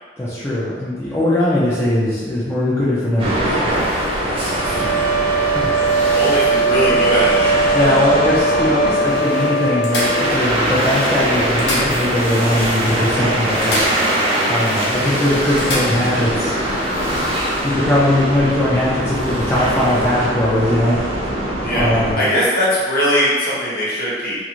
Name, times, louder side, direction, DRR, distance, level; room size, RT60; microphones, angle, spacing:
voice 1, 0.2-3.7 5.3-6.2 7.7-13.8 14.5-16.9 17.3-21.0 21.2-22.2, left 1 dB, 15° left, -10 dB, 0.4 m, -20 dB
sound 1, 3.2-22.1, right 1 dB, 30° right, 0.6 m, -22 dB
sound 2, 4.4-10.4, right 3 dB, 70° right, 0.8 m, -19 dB
voice 2, 6.1-7.4 21.6-21.9 22.1-24.4, equal, 55° left, -9 dB, 1.0 m, -19 dB
sound 3, 6.3-7.9 8.6-8.7 9.0-9.1 9.8-10.8 11.4-12.4 12.7-12.8 13.6-14.5 14.8-14.9 15.6-16.2 18.1-18.3, left 1 dB, 70° left, 0.7 m, -28 dB
2.4 x 2.4 x 2.9 m, 1.5 s
head